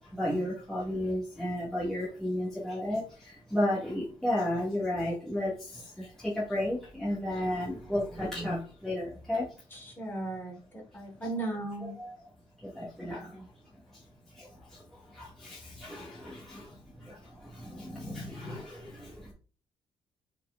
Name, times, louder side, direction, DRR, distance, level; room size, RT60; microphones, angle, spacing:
voice 1, 0.0-9.5 11.8-12.3 12.6-13.5 13.9-19.3, left 1 dB, 5° left, -8 dB, 2.1 m, -34 dB
voice 2, 9.7-10.6 10.9-11.9, right 2 dB, 20° left, -2 dB, 3.1 m, -36 dB
8.2 x 4.6 x 2.5 m, 0.37 s
cardioid pair, 140°, 11 cm